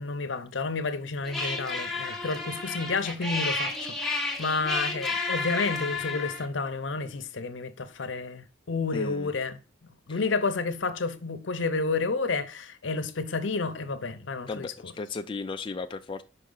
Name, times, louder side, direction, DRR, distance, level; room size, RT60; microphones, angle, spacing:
voice 1, 0.0-14.9, left 4 dB, 80° left, 0.8 m, -31 dB
sound 1, 1.3-6.5, left 3 dB, ahead, 0.9 m, -31 dB
voice 2, 8.9-9.3 14.5-16.2, left 4 dB, 25° left, 0.4 m, -35 dB
5.5 x 4.9 x 3.9 m
head